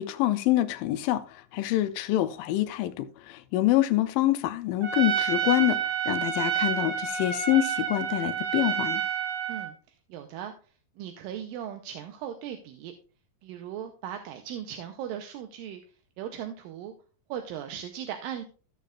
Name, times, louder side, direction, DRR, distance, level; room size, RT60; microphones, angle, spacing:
voice 1, 0.0-9.0, left 14 dB, 80° left, 2.2 m, -26 dB
Trumpet, 4.8-9.7, right 9 dB, 50° right, 1.2 m, -29 dB
voice 2, 9.5-10.5 11.0-12.9 13.4-15.8 16.2-16.9 17.3-18.5, right 9 dB, 80° right, 2.4 m, -38 dB
14.5 x 6.7 x 2.4 m
omnidirectional pair, 4.1 m